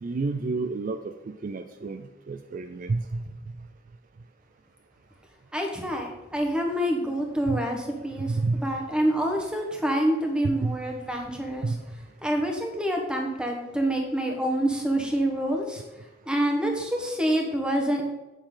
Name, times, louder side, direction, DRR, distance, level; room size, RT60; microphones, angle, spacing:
voice 1, 0.0-3.2 7.5-7.6 8.3-8.6 10.4-10.7 11.6-11.8, right 3 dB, 40° right, 8 dB, 0.4 m, -29 dB
voice 2, 5.5-11.8 12.2-15.8 16.2-18.0, right 1 dB, 5° right, 2 dB, 1.2 m, -27 dB
8.7 x 6.7 x 3.8 m, 1.0 s
head